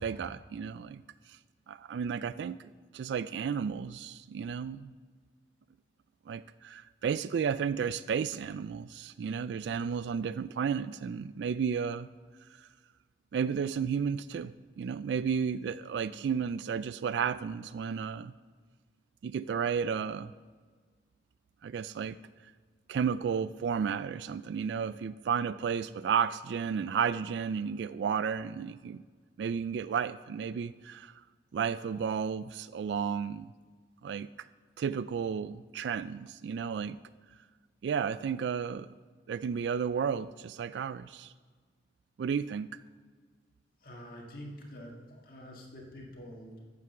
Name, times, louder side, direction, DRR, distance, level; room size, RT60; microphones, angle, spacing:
voice 1, 0.0-1.4 1.7-4.9 6.3-12.1 12.6-12.7 13.3-18.3 19.2-20.3 21.6-22.2 22.9-29.0 29.4-31.2 31.5-33.5 34.0-34.3 34.8-37.0 37.8-38.9 39.3-41.3 42.2-42.7, right 7 dB, 80° right, 15 dB, 0.3 m, -33 dB
voice 2, 43.8-46.6, equal, 55° left, -2 dB, 1.9 m, -46 dB
9.5 x 7.7 x 7.0 m, 1.5 s
head